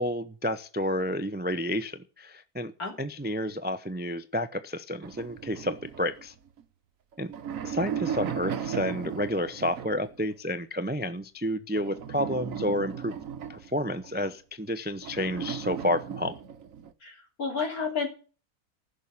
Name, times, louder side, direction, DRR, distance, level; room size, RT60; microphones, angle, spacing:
voice 1, 0.0-2.7 3.0-6.3 7.2-7.3 7.6-13.1 13.5-16.4, left 1 dB, 15° right, 12 dB, 0.3 m, -30 dB
sound 1, 5.0-6.6 7.1-10.2 11.7-14.3 15.0-16.9, right 8 dB, 70° right, 1.3 m, -36 dB
voice 2, 17.0-18.1, left 5 dB, 85° left, 2 dB, 3.7 m, -31 dB
15.0 x 6.3 x 8.6 m, 0.38 s
omnidirectional pair, 1.5 m